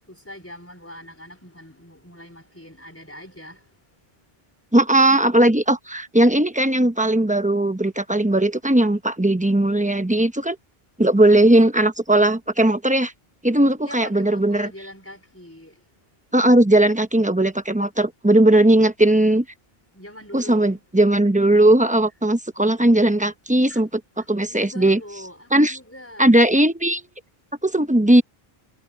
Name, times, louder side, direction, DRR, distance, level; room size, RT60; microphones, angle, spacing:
voice 1, 0.1-3.7 13.8-15.8 19.9-20.8 23.7-23.8 24.2-26.4, left 1 dB, 15° left, 5.0 m, -42 dB
voice 2, 4.7-10.6 11.0-13.1 13.4-14.7 16.3-19.4 20.3-23.9 24.3-25.0 25.5-25.8 26.2-27.0 27.6-28.2, right 1 dB, 10° right, 0.8 m, -18 dB
omnidirectional pair, 1.0 m